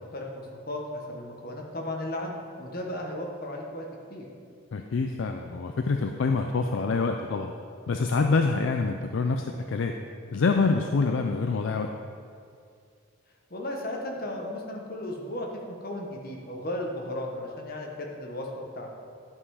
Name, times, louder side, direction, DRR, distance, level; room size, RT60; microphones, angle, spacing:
voice 1, 0.1-3.8 4.1-4.3 13.5-18.5 18.7-18.9, left 1 dB, 45° left, 0 dB, 1.2 m, -35 dB
voice 2, 4.7-7.5 7.9-9.9 10.3-11.9, left 4 dB, 60° left, 5 dB, 0.4 m, -26 dB
10.5 x 5.6 x 4.8 m, 2.3 s
head